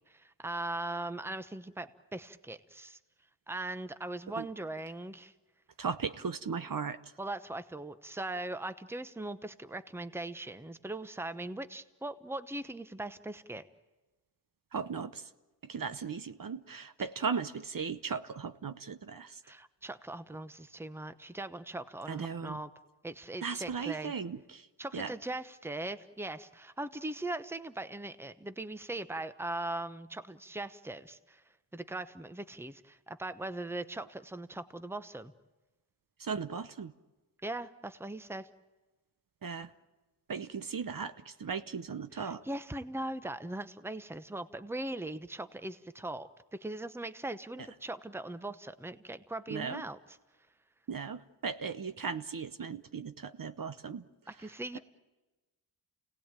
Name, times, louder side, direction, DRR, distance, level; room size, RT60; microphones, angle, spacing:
voice 1, 0.1-3.0 3.5-5.3 7.2-13.6 19.4-22.7 23.0-24.1 24.8-31.4 31.7-35.3 37.4-38.5 42.1-50.0 54.3-54.8, right 2 dB, 5° right, 12 dB, 0.9 m, -40 dB
voice 2, 5.8-7.0 14.7-15.3 15.6-19.4 22.1-22.6 23.4-24.7 24.9-25.1 36.2-36.9 39.4-39.7 40.3-42.4 49.5-49.8 50.9-54.0, right 6 dB, 50° right, 11 dB, 0.9 m, -37 dB
29.0 x 18.0 x 9.0 m, 1.2 s
wide cardioid pair, 75°, 41 cm